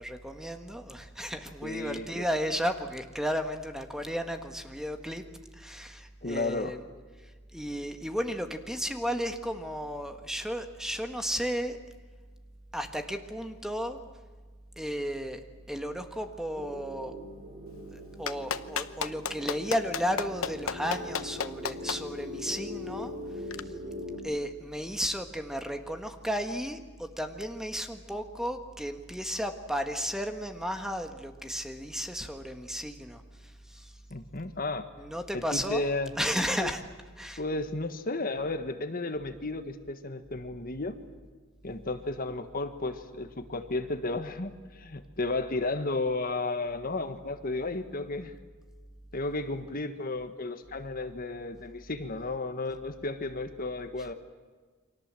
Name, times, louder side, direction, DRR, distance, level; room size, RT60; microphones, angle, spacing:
voice 1, 0.0-5.2 5.5-6.8 7.5-11.8 12.7-14.0 14.8-15.4 15.7-17.1 17.9-23.1 24.2-33.2 33.7-33.9 35.0-35.9 36.2-36.8 37.2-37.4, equal, 5° right, 6 dB, 1.5 m, -33 dB
voice 2, 1.6-2.2 6.2-6.8 34.1-34.9 35.3-36.1 36.6-36.7 37.4-40.9 41.6-48.3 49.1-54.1, left 2 dB, 45° left, 9 dB, 1.4 m, -33 dB
sound 1, 16.5-24.2, left 1 dB, 30° right, 4.2 m, -41 dB
Clapping, 18.3-22.0 23.5-23.6, left 6 dB, 85° left, 1.0 m, -32 dB
29.5 x 24.0 x 7.6 m, 1.4 s
head